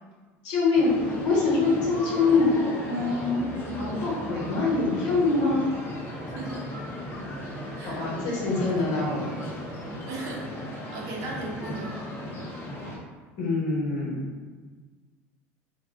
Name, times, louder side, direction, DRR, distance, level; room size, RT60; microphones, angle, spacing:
voice 1, 0.4-0.9 1.2-2.5 2.9-3.4 3.7-5.6 7.9-9.3 13.4-14.2, left 4 dB, 65° left, -5 dB, 1.2 m, -24 dB
sound 1, 0.7-13.0, equal, 35° left, 0.7 m, -36 dB
voice 2, 6.3-6.7 7.7-8.0 8.5-9.0 10.1-10.5 10.9-12.0, right 3 dB, 60° right, -1 dB, 0.7 m, -37 dB
2.6 x 2.2 x 3.6 m, 1.4 s
hypercardioid pair, 85°, 7 cm